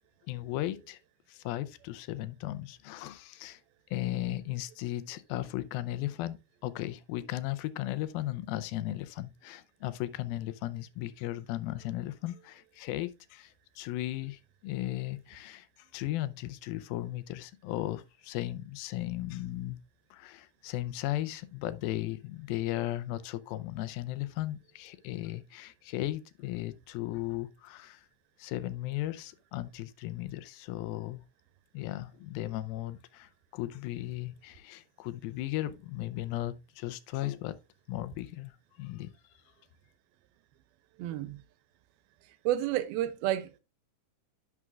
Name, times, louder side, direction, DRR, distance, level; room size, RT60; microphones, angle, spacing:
voice 1, 0.3-1.0 1.3-3.6 3.9-19.8 20.1-28.1 28.4-31.2 31.7-37.6 37.9-39.1, left 15 dB, 85° left, 2.4 m, -36 dB
voice 2, 41.0-41.4 42.5-43.6, right 13 dB, 90° right, 2.6 m, -30 dB
11.0 x 5.8 x 2.4 m
omnidirectional pair, 4.3 m